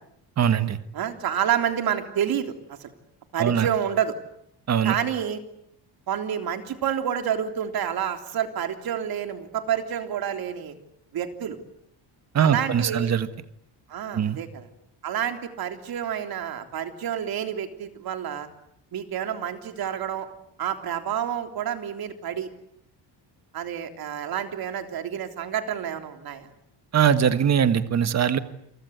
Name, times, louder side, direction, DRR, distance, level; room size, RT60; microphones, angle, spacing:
voice 1, 0.4-0.8 3.4-3.7 4.7-4.9 12.3-13.3 14.1-14.4 26.9-28.4, right 8 dB, 40° right, 11 dB, 1.7 m, -21 dB
voice 2, 0.9-2.5 2.8-2.9 3.3-4.1 4.8-5.4 6.1-10.7 11.1-11.6 12.4-13.1 13.9-14.7 15.0-18.5 18.9-20.3 20.6-22.5 23.5-26.5, right 9 dB, 60° right, 6 dB, 3.6 m, -29 dB
29.0 x 24.0 x 8.3 m, 0.73 s
cardioid pair, 155°, 42 cm